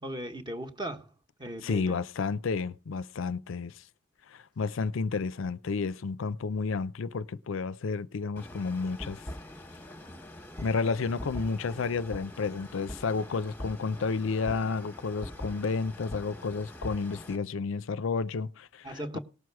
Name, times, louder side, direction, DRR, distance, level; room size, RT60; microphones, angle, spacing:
voice 1, 0.0-1.1 1.4-2.0 18.8-19.2, right 1 dB, 20° right, 1.1 m, -37 dB
voice 2, 1.6-3.8 4.3-9.2 10.6-19.2, left 4 dB, 70° left, 0.5 m, -31 dB
sound 1, 8.4-17.4, left 1 dB, 10° left, 1.1 m, -43 dB
18.5 x 6.3 x 4.7 m
head